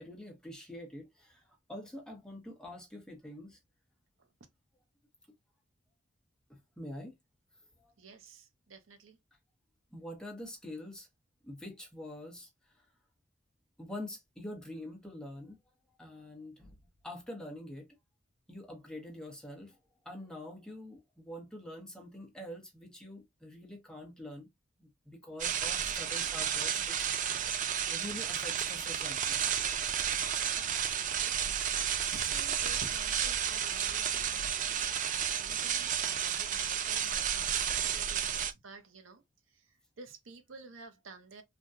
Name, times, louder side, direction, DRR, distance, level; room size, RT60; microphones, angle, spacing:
voice 1, 0.0-3.6 6.5-7.1 7.8-7.9 9.9-11.1 11.4-12.9 13.8-15.6 15.9-16.7 17.0-17.9 18.5-19.8 20.0-24.5 24.8-29.8 30.8-30.9 37.8-37.9, left 1 dB, 5° left, 0.9 m, -46 dB
voice 2, 8.0-9.2 32.0-39.2 39.5-41.4, right 4 dB, 75° right, 0.7 m, -52 dB
sound 1, 25.4-38.5, right 9 dB, 40° right, 0.4 m, -32 dB
3.4 x 2.2 x 2.6 m
head